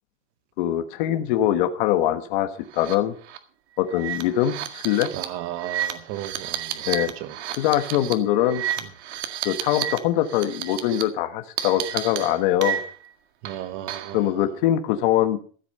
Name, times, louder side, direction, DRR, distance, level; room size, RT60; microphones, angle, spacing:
voice 1, 0.6-2.5 2.7-3.1 3.8-5.1 6.9-7.1 7.5-8.6 9.4-12.8 14.1-15.4, left 12 dB, 45° left, 1.5 m, -22 dB
sound 1, 2.7-3.0 3.3-3.4 3.9-10.0 10.3-11.0 11.6-13.1 13.4-14.2, right 10 dB, 80° right, 1.9 m, -31 dB
voice 2, 5.1-6.9 7.2-7.4 13.4-14.3, right 13 dB, 35° right, 1.1 m, -34 dB
14.5 x 8.4 x 5.5 m
supercardioid pair, 165°, 34 cm